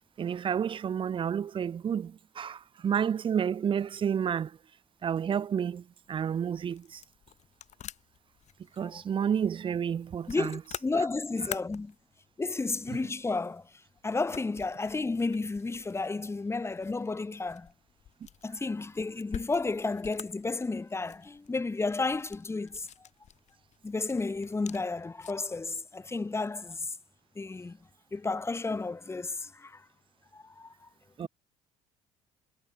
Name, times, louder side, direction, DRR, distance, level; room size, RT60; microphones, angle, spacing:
voice 1, 0.2-4.5 5.0-5.8 6.1-7.0 8.8-10.6 31.2-31.3, right 8 dB, 35° right, 0.6 m, -30 dB
sound 1, 6.0-25.6, left 10 dB, 55° left, 5.5 m, -49 dB
voice 2, 10.3-11.9 12.4-13.7 14.0-17.7 18.4-22.9 23.8-26.9 27.3-27.8 28.1-29.8 30.3-30.9, left 3 dB, 20° left, 1.4 m, -32 dB
supercardioid pair, 75°, 14 cm